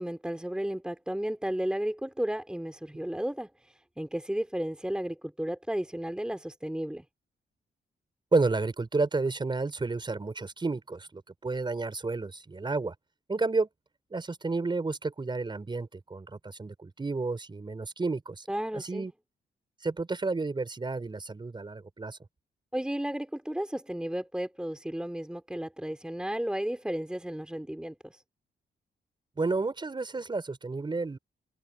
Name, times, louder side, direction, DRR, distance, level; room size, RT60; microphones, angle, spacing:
voice 1, 0.0-3.5 4.0-7.0 18.5-19.1 22.7-28.2, right 1 dB, 5° right, 3.1 m, -33 dB
voice 2, 8.3-12.9 13.3-13.7 14.1-18.4 18.7-19.1 19.8-22.2 29.4-31.2, right 3 dB, 25° right, 5.2 m, -31 dB
cardioid pair, 115°, 18 cm